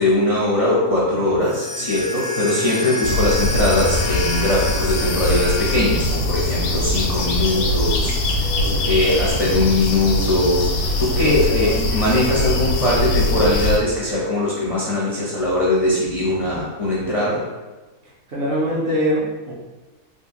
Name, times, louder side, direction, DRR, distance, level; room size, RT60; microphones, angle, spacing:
voice 1, 0.0-8.1 8.8-10.7 11.0-17.5, left 1 dB, 40° left, -7 dB, 0.4 m, -20 dB
sound 1, 1.4-6.2, left 2 dB, 65° left, 0.8 m, -29 dB
sound 2, 3.0-13.8, left 1 dB, 80° left, 1.1 m, -22 dB
voice 2, 8.6-9.0 11.2-11.7 17.3-17.4 18.3-19.5, equal, 50° right, -5 dB, 0.7 m, -24 dB
3.7 x 2.4 x 2.8 m, 1.2 s
omnidirectional pair, 1.6 m